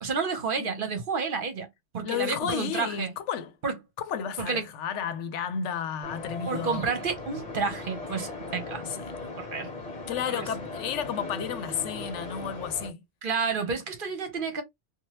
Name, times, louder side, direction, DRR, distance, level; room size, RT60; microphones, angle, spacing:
voice 1, 0.0-1.7 1.9-3.1 3.6-3.7 4.4-4.7 6.5-8.8 9.4-9.7 10.3-10.5 13.2-14.6, right 5 dB, 50° right, 0.9 m, -30 dB
voice 2, 0.6-0.9 2.0-3.5 4.0-6.9 8.8-9.1 10.1-13.0, left 8 dB, 90° left, 0.9 m, -32 dB
sound 1, 6.0-12.9, left 3 dB, 40° left, 1.2 m, -38 dB
2.7 x 2.3 x 3.0 m
omnidirectional pair, 1.2 m